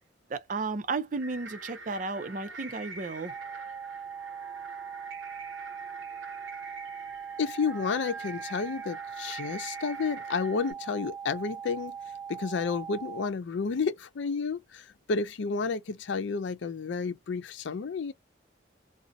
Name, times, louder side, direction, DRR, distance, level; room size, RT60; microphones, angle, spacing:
voice 1, 0.3-3.3, right 3 dB, 40° right, 0.4 m, -33 dB
sound 1, 1.1-10.7, right 3 dB, 85° right, 0.7 m, -45 dB
sound 2, 3.3-13.3, right 7 dB, 5° left, 0.9 m, -40 dB
voice 2, 7.4-12.0 12.3-18.1, left 5 dB, 75° left, 0.4 m, -31 dB
2.5 x 2.0 x 2.5 m
head